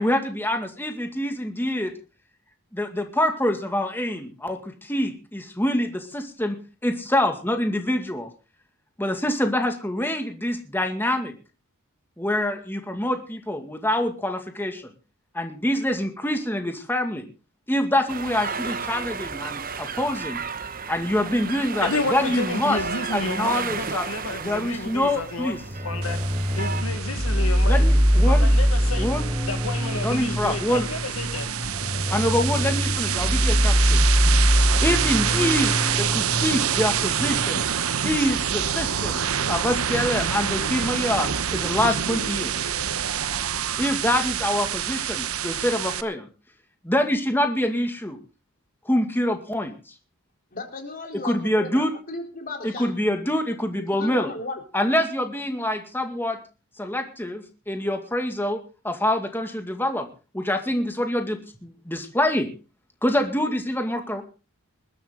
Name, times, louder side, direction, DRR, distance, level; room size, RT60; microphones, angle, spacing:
voice 1, 0.0-1.9 2.7-8.3 9.0-11.3 12.2-14.9 15.3-17.3 17.7-20.4 20.9-22.8 23.1-24.1 24.4-25.6 27.6-28.5 29.0-29.3 30.0-30.9 32.1-34.0 34.8-37.6 38.0-39.2 39.5-42.5 43.8-46.3 46.8-48.2 48.9-49.7 51.1-51.9 52.6-54.3 54.7-56.4 56.8-60.1 60.3-62.5 63.0-64.2, left 1 dB, 10° left, 2.2 m, -25 dB
sound 1, 18.1-26.8, right 5 dB, 40° right, 1.0 m, -33 dB
voice 2, 21.7-25.6 25.8-26.2 26.5-27.9 28.3-29.1 29.4-31.5, left 3 dB, 70° left, 1.7 m, -31 dB
sound 2, 25.6-37.6, equal, 15° right, 1.6 m, -23 dB
sound 3, 26.0-46.0, right 8 dB, 70° right, 1.0 m, -27 dB
voice 3, 50.5-52.9 53.9-54.6, left 2 dB, 40° left, 3.8 m, -35 dB
21.0 x 12.0 x 3.9 m
head